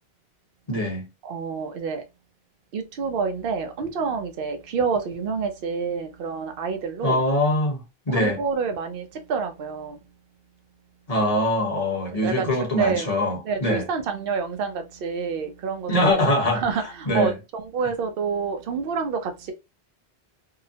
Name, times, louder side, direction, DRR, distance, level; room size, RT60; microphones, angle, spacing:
voice 1, 0.7-1.1 7.0-8.4 11.1-13.9 15.9-17.4, left 1 dB, 40° left, 0.9 m, -23 dB
voice 2, 1.2-2.0 2.7-7.2 8.1-10.0 12.2-12.5 12.8-13.1 13.4-15.9 16.5-19.5, right 5 dB, 65° right, 0.8 m, -28 dB
2.8 x 2.0 x 2.7 m
omnidirectional pair, 1.1 m